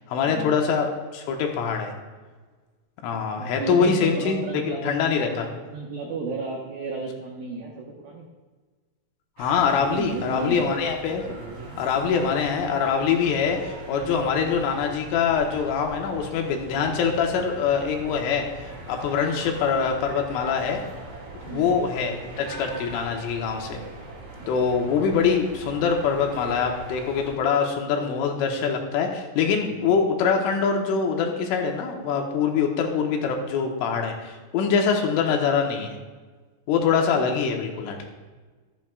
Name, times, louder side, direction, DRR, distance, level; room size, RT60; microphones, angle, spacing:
voice 1, 0.1-0.9 1.1-1.9 3.0-5.5 9.4-11.2 11.8-20.8 21.5-23.8 24.5-36.0 36.7-38.1, left 6 dB, 75° left, 2 dB, 3.4 m, -24 dB
voice 2, 3.4-5.0 5.4-8.3 9.8-10.6 11.4-11.8 21.5-21.7 24.4-24.5 29.5-29.9 37.2-37.3, right 4 dB, 80° right, -2 dB, 2.1 m, -33 dB
sound 1, 9.4-27.4, right 2 dB, 45° right, 3.7 m, -41 dB
15.0 x 13.0 x 2.3 m, 1.4 s
omnidirectional pair, 5.9 m